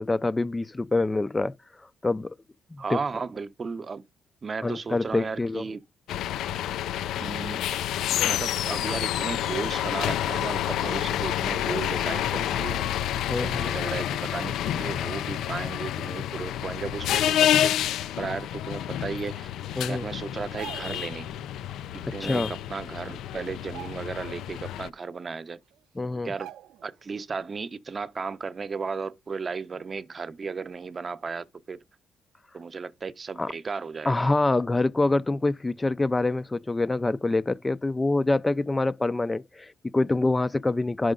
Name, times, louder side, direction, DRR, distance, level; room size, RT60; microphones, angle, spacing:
voice 1, 0.0-1.5 2.0-2.3 2.7-3.0 4.6-5.6 13.3-13.7 19.8-20.1 22.2-22.6 26.0-26.3 33.4-33.5 34.1-41.1, left 2 dB, 20° left, 0.5 m, -25 dB
voice 2, 2.8-4.0 4.4-5.8 7.2-7.9 8.2-12.8 13.4-17.7 18.2-19.5 19.9-21.3 22.1-25.6 26.2-26.5 26.8-31.8 32.5-34.3, right 5 dB, 35° right, 0.8 m, -35 dB
sound 1, 6.1-24.9, left 11 dB, 85° left, 0.4 m, -29 dB
sound 2, 20.4-21.1 22.6-22.7 23.0-23.2 23.6-24.4 24.8-24.9 25.7-25.8 26.4-27.0 27.4-27.5, right 12 dB, 85° right, 0.5 m, -44 dB
10.5 x 6.3 x 3.8 m
cardioid pair, 90°, 0 cm